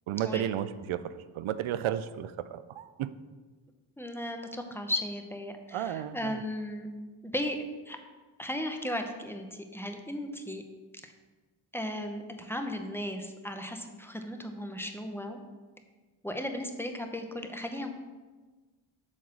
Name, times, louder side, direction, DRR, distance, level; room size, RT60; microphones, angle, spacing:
voice 1, 0.1-3.1 5.7-6.4, right 11 dB, 75° right, 14 dB, 0.5 m, -33 dB
voice 2, 4.0-6.9 7.2-8.0 8.4-10.6 11.0-11.1 11.7-15.4 16.2-18.0, left 1 dB, 5° left, 5 dB, 0.8 m, -36 dB
7.5 x 4.0 x 6.1 m, 1.3 s
cardioid pair, 65°, 49 cm